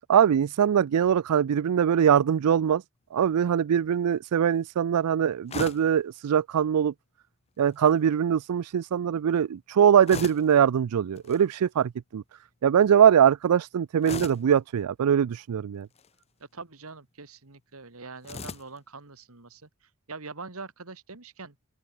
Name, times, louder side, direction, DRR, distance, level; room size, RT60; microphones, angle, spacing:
voice 1, 0.1-2.8 3.1-6.9 7.6-12.2 12.6-15.9, right 8 dB, 90° right, 0.4 m, -22 dB
sound 1, 5.5-6.0 7.6-8.0 10.1-10.6 11.2-11.4 14.0-14.5 15.8-16.2 18.2-18.8, left 4 dB, 30° left, 0.6 m, -38 dB
voice 2, 16.5-19.7 20.1-21.6, right 4 dB, 75° right, 2.0 m, -43 dB
open air
head